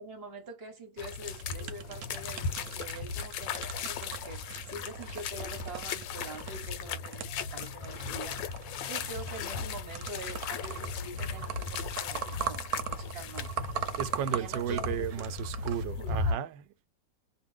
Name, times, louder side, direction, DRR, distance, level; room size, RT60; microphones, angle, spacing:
voice 1, 0.0-8.4 8.8-13.5 14.3-15.3 15.9-16.4, right 2 dB, 40° right, 1.0 m, -45 dB
sound 1, 1.0-16.3, left 5 dB, 85° left, 1.3 m, -37 dB
sound 2, 1.2-15.8, right 8 dB, 65° right, 1.0 m, -41 dB
voice 2, 14.0-16.9, right 8 dB, 90° right, 1.3 m, -34 dB
2.7 x 2.5 x 3.2 m
omnidirectional pair, 1.9 m